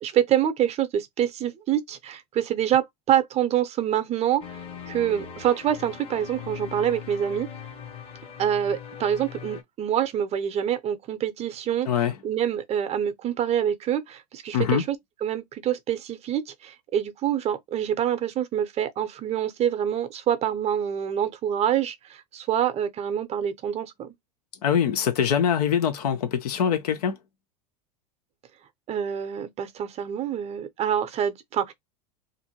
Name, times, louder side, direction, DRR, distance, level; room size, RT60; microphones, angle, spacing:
voice 1, 0.0-4.4 4.9-7.5 8.4-15.0 15.2-24.1 28.9-31.7, right 10 dB, 30° right, 0.7 m, -26 dB
sound 1, 4.4-9.6, left 7 dB, 30° left, 0.9 m, -40 dB
voice 2, 11.9-12.2 14.5-14.8 24.6-27.2, left 8 dB, 70° left, 0.6 m, -23 dB
2.6 x 2.5 x 2.8 m
hypercardioid pair, 90°, 21 cm